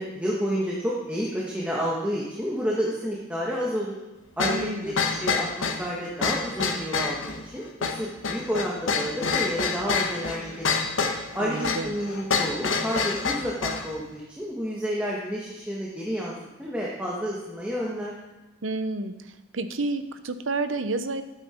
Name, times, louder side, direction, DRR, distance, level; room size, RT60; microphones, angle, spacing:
voice 1, 0.0-3.9 4.4-10.8 11.3-16.3 16.6-18.1, equal, 5° right, -5 dB, 1.6 m, -30 dB
sound 1, 4.4-13.9, left 4 dB, 85° left, 1.4 m, -27 dB
voice 2, 4.5-5.0 11.4-11.9 18.6-19.1 19.5-21.2, right 2 dB, 85° right, 10 dB, 0.9 m, -30 dB
15.5 x 9.2 x 4.5 m, 1.1 s
head